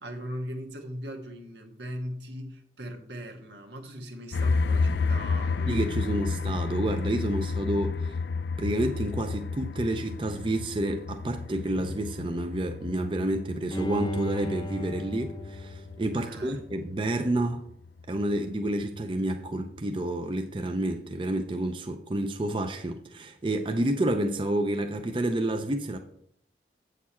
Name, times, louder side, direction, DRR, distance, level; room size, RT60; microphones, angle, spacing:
voice 1, 0.0-6.5 16.2-16.6, equal, 80° right, 1.4 m, -40 dB
sound 1, 4.3-19.8, left 4 dB, 70° left, 0.4 m, -31 dB
voice 2, 5.7-8.1 8.6-17.7 18.1-26.0, right 1 dB, 30° right, 0.5 m, -29 dB
Bowed string instrument, 13.7-16.8 17.2-17.3, equal, 25° left, 0.6 m, -36 dB
8.4 x 6.7 x 4.4 m
head